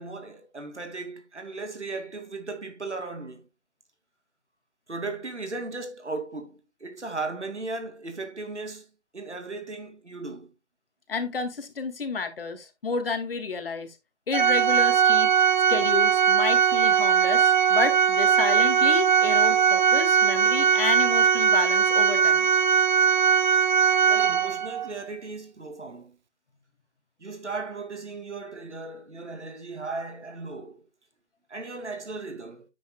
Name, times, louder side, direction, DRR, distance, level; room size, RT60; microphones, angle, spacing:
voice 1, 0.0-3.4 4.9-8.9 9.1-10.5 24.0-26.2 27.2-30.8 31.5-32.7, right 3 dB, 90° right, 2.7 m, -36 dB
voice 2, 11.1-13.9 14.3-15.3 15.7-22.5, left 4 dB, 55° left, 2.5 m, -30 dB
Organ, 14.3-24.9, right 7 dB, 40° right, 0.7 m, -20 dB
9.6 x 9.3 x 2.4 m
figure-of-eight pair, 150°, 34 cm